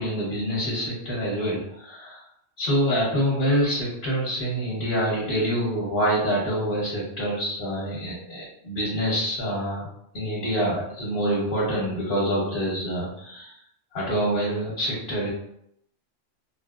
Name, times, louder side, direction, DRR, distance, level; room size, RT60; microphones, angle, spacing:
voice 1, 0.0-2.2 2.6-9.9 10.1-13.5 13.9-15.3, equal, 50° left, -7 dB, 1.1 m, -26 dB
4.0 x 2.0 x 2.3 m, 0.74 s
omnidirectional pair, 1.3 m